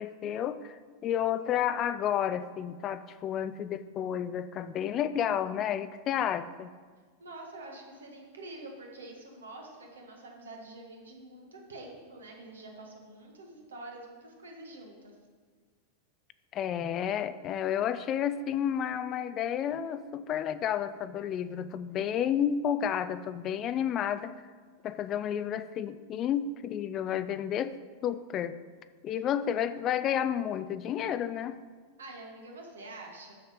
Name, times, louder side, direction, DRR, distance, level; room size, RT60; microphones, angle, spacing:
voice 1, 0.0-6.7 16.5-24.3 24.8-27.8 28.0-28.6 29.0-31.6, left 9 dB, 30° left, 13 dB, 0.3 m, -31 dB
voice 2, 7.2-15.1 29.1-29.2 32.0-33.3, right 2 dB, 70° right, 0 dB, 1.5 m, -46 dB
6.9 x 6.3 x 5.0 m, 1.5 s
figure-of-eight pair, 90°, 0 cm